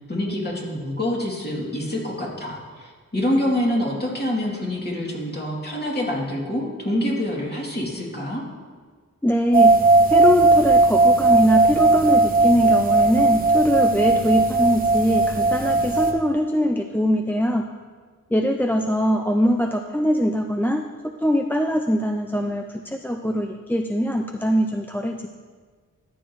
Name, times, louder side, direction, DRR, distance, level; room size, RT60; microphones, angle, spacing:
voice 1, 0.1-8.4, left 1 dB, 30° left, -4 dB, 2.6 m, -26 dB
voice 2, 9.2-9.8 10.1-17.7 18.3-25.3, equal, 5° left, 4 dB, 0.4 m, -22 dB
sound 1, 9.5-16.1, right 2 dB, 25° right, 1.3 m, -17 dB
13.5 x 10.0 x 3.1 m, 1.5 s
wide cardioid pair, 95°, 33 cm